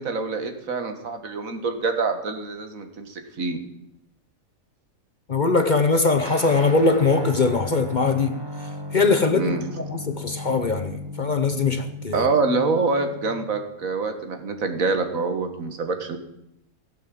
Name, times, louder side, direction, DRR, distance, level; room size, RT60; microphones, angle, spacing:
voice 1, 0.0-3.6 9.3-9.6 12.1-16.2, right 4 dB, 75° right, 7 dB, 1.9 m, -26 dB
voice 2, 5.3-8.3 8.9-12.3, left 3 dB, 40° left, 7 dB, 0.9 m, -21 dB
Guitar, 6.2-13.9, left 1 dB, 20° right, 1.0 m, -36 dB
16.0 x 7.5 x 7.6 m, 0.83 s
omnidirectional pair, 1.4 m